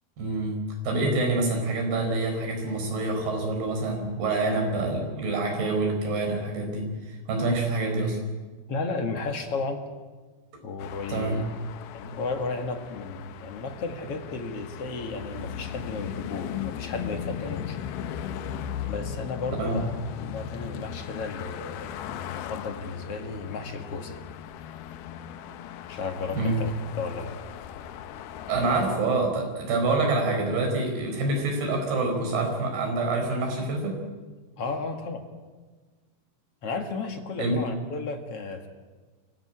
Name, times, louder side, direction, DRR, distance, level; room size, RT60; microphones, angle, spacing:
voice 1, 0.2-0.6 0.8-6.9 7.3-8.2 11.1-11.4 19.6-19.8 26.3-26.6 28.5-34.0 37.4-37.6, right 2 dB, 65° right, 2 dB, 6.4 m, -26 dB
voice 2, 8.7-9.8 10.6-11.4 11.9-17.8 18.9-19.9 20.2-24.2 25.9-26.7 27.0-27.4 34.6-35.2 36.6-38.7, left 3 dB, 50° left, 5 dB, 1.8 m, -33 dB
sound 1, 10.8-29.0, left 9 dB, 75° left, 2.6 m, -38 dB
25.0 x 15.5 x 9.9 m, 1.4 s
omnidirectional pair, 4.9 m